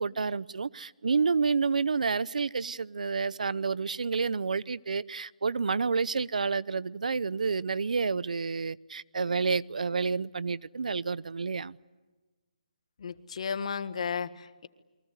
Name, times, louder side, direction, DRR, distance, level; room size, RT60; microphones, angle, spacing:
voice 1, 0.0-11.8, right 5 dB, 75° right, 0.8 m, -29 dB
voice 2, 13.0-14.7, left 6 dB, 50° left, 1.6 m, -34 dB
29.0 x 23.5 x 8.3 m
hypercardioid pair, 165°, 4 cm